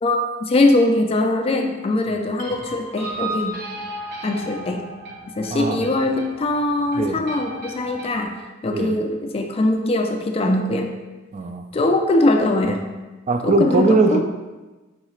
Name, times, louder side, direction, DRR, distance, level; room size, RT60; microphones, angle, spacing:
voice 1, 0.0-3.6 4.2-4.8 5.4-8.3 8.6-10.9 11.7-12.8 13.4-14.2, left 2 dB, 30° left, 4 dB, 0.4 m, -21 dB
sound 1, 2.4-8.3, right 2 dB, 55° right, 0.8 m, -35 dB
voice 2, 5.5-5.9 7.0-7.2 8.7-8.9 11.3-11.6 13.3-14.2, right 3 dB, 35° right, 6 dB, 0.4 m, -20 dB
4.7 x 3.2 x 3.1 m, 1.2 s
head